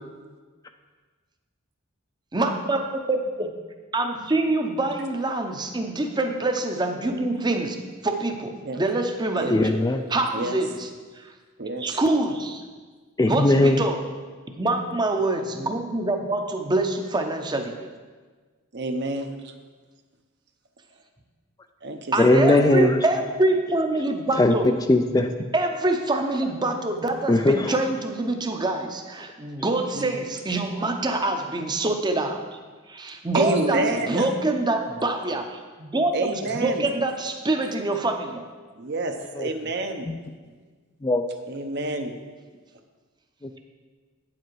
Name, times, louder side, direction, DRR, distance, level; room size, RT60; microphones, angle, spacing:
voice 1, 2.3-3.5 3.9-7.8 8.0-9.6 10.1-10.9 11.2-11.3 11.8-12.6 13.3-14.0 14.6-17.7 22.1-24.7 25.5-32.4 32.9-38.5, right 2 dB, 20° right, 5 dB, 0.7 m, -25 dB
voice 2, 9.5-10.0 13.2-13.8 22.2-23.0 24.4-24.5 24.9-25.3 27.3-27.7 39.4-39.5 41.0-41.2, left 2 dB, 15° left, 6 dB, 0.3 m, -19 dB
voice 3, 11.6-12.0 18.7-19.5 21.8-22.7 29.9-30.2 33.3-34.3 36.1-36.9 38.8-40.1 41.5-42.1, right 2 dB, 50° right, 6 dB, 0.8 m, -28 dB
8.9 x 7.5 x 4.7 m, 1.4 s
head